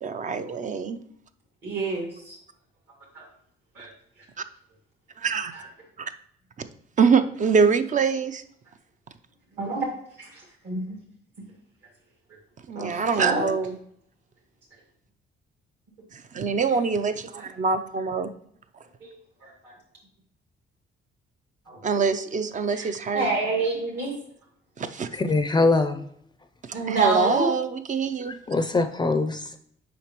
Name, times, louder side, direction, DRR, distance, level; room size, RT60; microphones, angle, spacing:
voice 1, 0.0-1.0 5.2-5.5 6.0-6.1 7.0-8.4 12.7-13.8 16.3-18.3 21.8-23.3 24.8-25.1 26.9-28.4, right 5 dB, 40° right, 0.5 m, -24 dB
voice 2, 1.6-2.4 3.1-3.2 3.7-3.9 5.5-5.6 9.6-9.9 10.2-10.8 12.7-13.5 17.3-17.5 19.0-19.2 19.4-19.7 21.7-21.8 22.7-24.1 26.7-27.5, right 3 dB, 60° right, 2.2 m, -28 dB
voice 3, 25.1-26.0 28.2-29.6, left 3 dB, 20° left, 0.5 m, -23 dB
7.0 x 5.0 x 3.0 m
cardioid pair, 90°, 20 cm